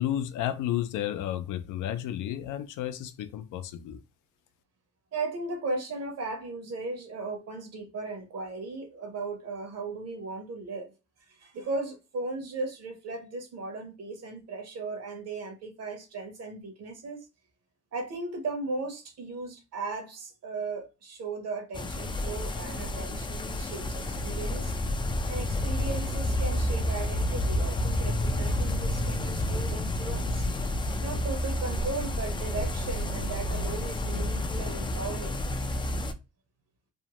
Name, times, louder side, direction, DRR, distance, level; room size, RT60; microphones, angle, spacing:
voice 1, 0.0-4.0, left 11 dB, 80° left, 0.5 m, -32 dB
voice 2, 5.1-10.9 11.3-17.3 17.9-24.7 25.3-30.5 31.0-35.6, right 3 dB, 55° right, 1.0 m, -37 dB
sound 1, 21.7-36.1, left 1 dB, 15° left, 0.3 m, -30 dB
2.7 x 2.1 x 2.9 m
cardioid pair, 90°, 30 cm